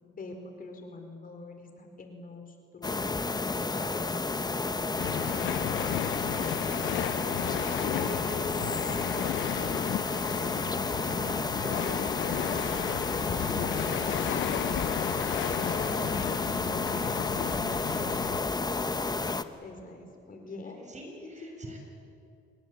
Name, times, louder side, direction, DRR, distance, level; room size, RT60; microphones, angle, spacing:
voice 1, 0.0-3.3 3.7-5.6 15.4-18.1 19.6-20.8 21.2-21.8, left 2 dB, 45° left, 5 dB, 4.6 m, -44 dB
sound 1, 2.8-19.4, left 3 dB, 20° left, 1.1 m, -31 dB
sound 2, 5.0-18.4, left 14 dB, 75° left, 0.5 m, -34 dB
voice 2, 7.9-9.1 10.1-12.0 12.6-13.9 20.4-21.8, right 1 dB, 35° right, 3 dB, 7.0 m, -45 dB
26.5 x 22.0 x 8.6 m, 2.4 s
cardioid pair, 90°, 20 cm